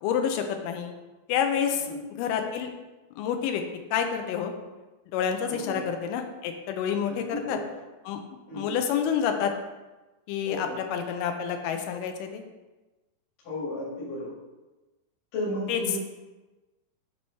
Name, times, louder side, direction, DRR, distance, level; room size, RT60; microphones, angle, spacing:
voice 1, 0.0-0.9 1.3-1.9 2.2-2.7 3.2-3.6 3.9-4.5 5.1-7.6 8.1-8.2 8.5-9.5 10.3-12.4 15.7-15.8, left 8 dB, 80° left, 5 dB, 2.0 m, -28 dB
voice 2, 5.4-5.8 7.1-7.6 8.5-8.8 10.4-10.7 13.4-14.3 15.3-16.0, left 1 dB, 60° left, -8 dB, 3.2 m, -34 dB
8.4 x 3.0 x 5.5 m, 1.1 s
omnidirectional pair, 4.4 m